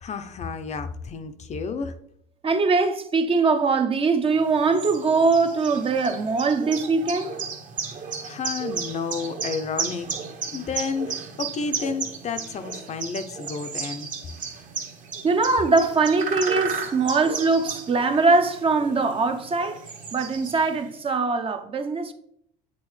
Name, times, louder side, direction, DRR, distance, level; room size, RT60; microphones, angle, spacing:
voice 1, 0.0-1.9 8.2-10.1 10.5-14.1, left 5 dB, 45° left, 0.6 m, -31 dB
voice 2, 2.4-7.3 15.2-19.8 20.1-22.1, right 4 dB, 35° right, 0.6 m, -22 dB
sound 1, 4.3-20.9, right 5 dB, 50° right, 1.2 m, -34 dB
8.4 x 4.0 x 3.2 m
cardioid pair, 110°, 17 cm